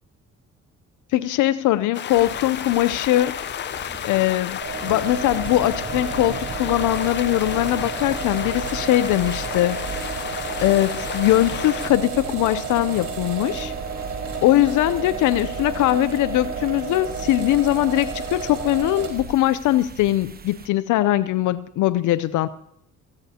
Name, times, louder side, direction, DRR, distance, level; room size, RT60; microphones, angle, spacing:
voice 1, 1.1-3.3 4.0-9.8 10.6-13.7 14.4-22.5, left 15 dB, 85° left, 13 dB, 0.6 m, -21 dB
sound 1, 1.9-11.9, left 10 dB, 40° left, 0.4 m, -32 dB
sound 2, 2.1-20.7, right 5 dB, 30° right, 0.9 m, -42 dB
sound 3, 4.6-19.3, right 5 dB, 50° right, 4.5 m, -31 dB
18.5 x 14.5 x 2.8 m, 0.79 s
cardioid pair, 90°, 30 cm